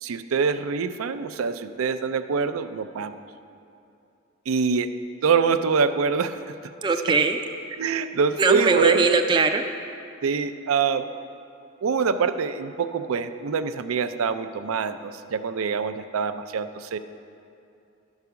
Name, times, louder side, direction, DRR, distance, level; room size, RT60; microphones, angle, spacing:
voice 1, 0.0-3.2 4.5-4.9 5.2-6.5 7.8-9.1 10.2-11.1 11.8-17.0, right 5 dB, 85° right, 10 dB, 0.4 m, -25 dB
voice 2, 6.8-7.4 8.4-9.6, right 4 dB, 20° right, 5 dB, 0.3 m, -20 dB
11.5 x 4.8 x 6.8 m, 2.6 s
head